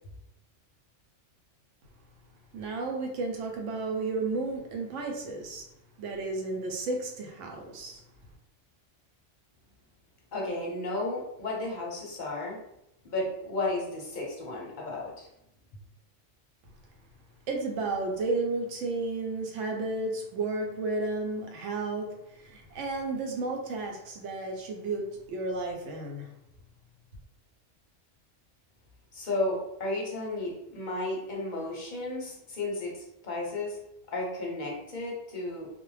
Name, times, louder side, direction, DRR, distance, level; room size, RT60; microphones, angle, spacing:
voice 1, 2.5-5.6 6.0-8.0 17.5-26.3, right 3 dB, 85° right, 2 dB, 0.9 m, -32 dB
voice 2, 10.3-12.6 13.0-15.3 29.1-33.8 34.1-35.7, left 2 dB, 50° left, -2 dB, 0.6 m, -33 dB
2.4 x 2.0 x 3.1 m, 0.82 s
omnidirectional pair, 1.2 m